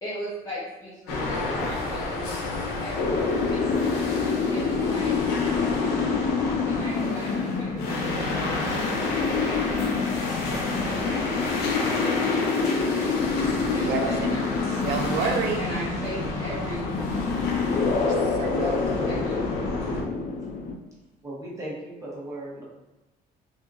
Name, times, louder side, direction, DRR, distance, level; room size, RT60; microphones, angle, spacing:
voice 1, 0.0-2.3 2.8-3.1 3.5-4.2 4.5-5.1 6.6-13.0 13.7-14.6 15.6-17.2 19.1-19.6, equal, 20° left, -9 dB, 1.0 m, -38 dB
sound 1, 1.1-20.0, left 2 dB, 85° left, 0.7 m, -31 dB
sound 2, 3.0-20.7, left 4 dB, 50° left, 0.5 m, -27 dB
voice 2, 14.8-15.6 18.0-19.1, right 5 dB, 80° right, 3 dB, 0.6 m, -29 dB
voice 3, 21.2-22.6, right 1 dB, 20° right, -6 dB, 1.0 m, -37 dB
3.5 x 2.7 x 2.6 m, 1.1 s
cardioid pair, 110°, 17 cm